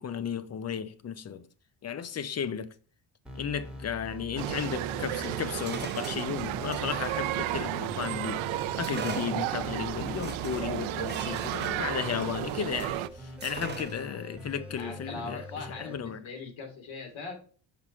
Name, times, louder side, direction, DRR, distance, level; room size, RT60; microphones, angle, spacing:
voice 1, 0.0-1.5 1.8-2.7 3.3-15.5 15.8-16.3, left 7 dB, 35° left, 0.6 m, -34 dB
sound 1, 3.3-16.0, left 1 dB, ahead, 1.2 m, -44 dB
sound 2, 4.4-13.1, right 14 dB, 75° right, 0.6 m, -33 dB
sound 3, 5.2-8.2 8.8-13.0 13.4-14.2, right 5 dB, 20° right, 0.8 m, -43 dB
voice 2, 14.8-17.3, left 4 dB, 70° left, 2.8 m, -40 dB
5.9 x 4.9 x 4.3 m
cardioid pair, 115°, 47 cm